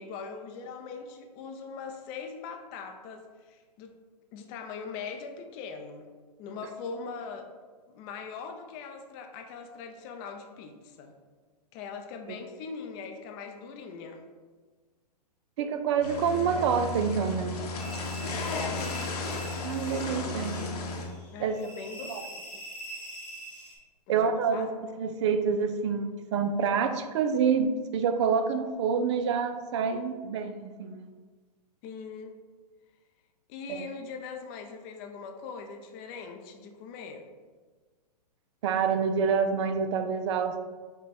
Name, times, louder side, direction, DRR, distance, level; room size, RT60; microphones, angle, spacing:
voice 1, 0.0-4.0 4.3-6.1 6.4-7.5 7.9-11.1 11.7-14.2 18.4-18.8 19.5-19.7 21.3-22.4 24.1-24.7 31.8-32.4 33.5-37.3, left 5 dB, 30° left, 5 dB, 0.5 m, -41 dB
voice 2, 15.6-17.6 19.6-20.6 21.4-21.6 22.1-22.2 24.1-24.7 25.0-31.1 33.7-33.9 38.6-40.6, right 6 dB, 45° right, 8 dB, 0.4 m, -27 dB
sound 1, 16.0-21.1, left 3 dB, 65° left, 0.9 m, -34 dB
sound 2, 17.8-23.8, right 1 dB, 5° left, 1.2 m, -45 dB
5.4 x 2.2 x 4.1 m, 1.4 s
hypercardioid pair, 125°, 21 cm